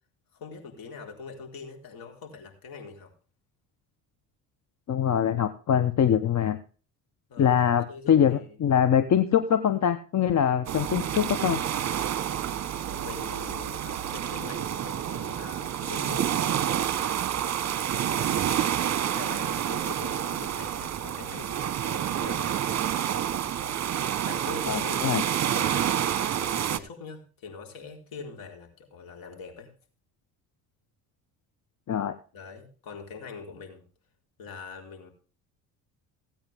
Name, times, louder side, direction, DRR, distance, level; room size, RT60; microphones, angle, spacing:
voice 1, 0.3-3.1 7.3-8.6 12.5-16.7 18.2-18.8 19.1-22.8 24.0-25.9 26.4-29.7 32.3-33.8 34.4-35.1, left 5 dB, 60° left, 3 dB, 4.1 m, -43 dB
voice 2, 4.9-6.6 7.4-11.6 24.7-25.2 31.9-32.1, left 9 dB, 45° left, 11 dB, 1.1 m, -23 dB
sound 1, 10.7-26.8, right 10 dB, 40° right, 1.2 m, -29 dB
16.5 x 8.8 x 3.5 m, 0.38 s
supercardioid pair, 75°, 39 cm